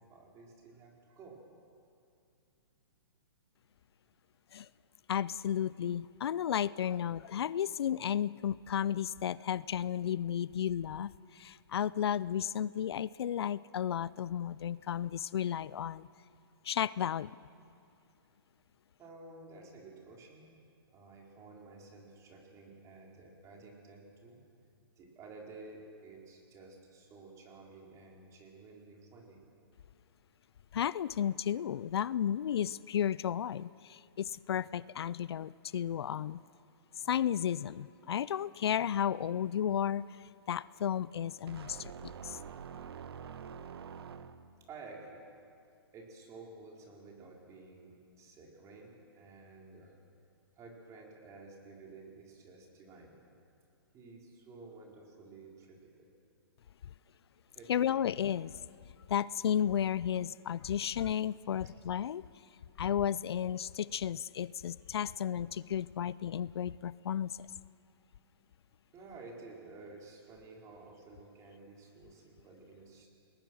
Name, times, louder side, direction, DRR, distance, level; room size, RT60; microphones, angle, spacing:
voice 1, 0.0-1.4 19.0-20.5 20.9-24.4 25.0-29.5 34.5-34.7 44.7-45.2 45.9-50.0 50.6-53.2 53.9-56.1 57.5-58.0 67.9-68.1 68.9-73.1, right 3 dB, 25° right, -1 dB, 4.4 m, -52 dB
voice 2, 5.1-16.1 16.6-17.4 30.7-36.4 37.0-40.0 40.5-42.4 57.7-58.6 59.1-62.2 62.8-67.5, left 9 dB, 75° left, 20 dB, 0.5 m, -33 dB
sound 1, 41.5-44.7, right 7 dB, 70° right, 1.2 m, -46 dB
29.5 x 20.0 x 6.3 m, 2.5 s
hypercardioid pair, 140°, 13 cm